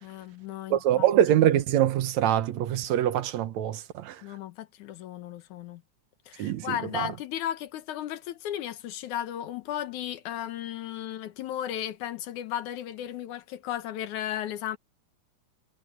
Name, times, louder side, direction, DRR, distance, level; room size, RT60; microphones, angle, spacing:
voice 1, 0.0-1.1 4.2-5.8 6.3-14.8, left 11 dB, 90° left, 2.6 m, -35 dB
voice 2, 0.7-4.2 6.4-7.1, right 11 dB, 70° right, 2.4 m, -24 dB
omnidirectional pair, 3.3 m